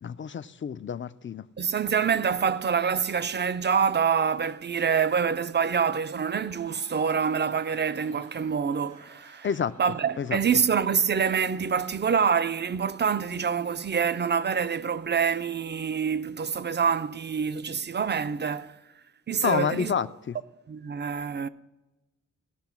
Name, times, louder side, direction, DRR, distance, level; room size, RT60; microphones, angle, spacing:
voice 1, 0.0-1.5 9.4-9.7 10.2-10.4 19.4-20.4, left 7 dB, 40° left, 0.4 m, -29 dB
voice 2, 1.6-9.5 9.8-18.7 19.3-19.9 20.7-21.5, right 6 dB, 35° right, 0.4 m, -26 dB
Laughter / Crowd, 6.2-12.3, right 3 dB, 85° right, 2.9 m, -56 dB
17.0 x 6.1 x 5.8 m
wide cardioid pair, 125°, 30 cm